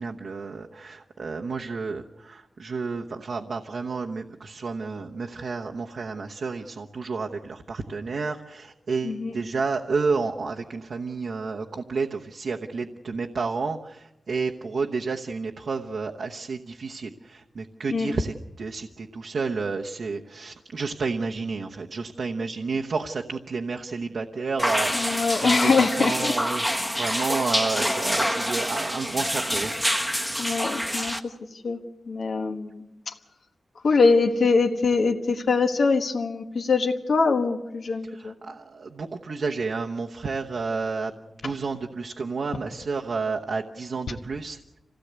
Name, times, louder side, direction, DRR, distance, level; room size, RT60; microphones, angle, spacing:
voice 1, 0.0-29.7 38.0-41.1 41.4-44.8, right 4 dB, 60° right, 2 dB, 1.0 m, -31 dB
sound 1, 24.6-31.2, equal, ahead, 1.1 m, -26 dB
voice 2, 24.9-26.3 30.4-31.3 31.6-31.8 32.1-33.1 33.8-38.3 41.4-41.5, left 4 dB, 65° left, 3 dB, 1.4 m, -23 dB
26.5 x 17.0 x 8.1 m, 0.97 s
wide cardioid pair, 170°, 0 cm